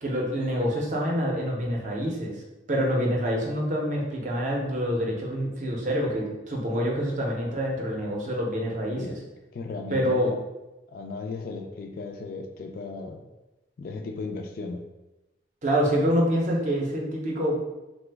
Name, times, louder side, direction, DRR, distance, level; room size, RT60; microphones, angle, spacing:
voice 1, 0.0-2.3 2.7-9.1 9.9-10.3 15.6-17.6, equal, 40° right, -2 dB, 0.6 m, -26 dB
voice 2, 9.5-10.4 10.9-13.2 13.8-14.8, left 3 dB, 50° left, 4 dB, 0.3 m, -36 dB
3.0 x 2.0 x 3.3 m, 1.0 s
head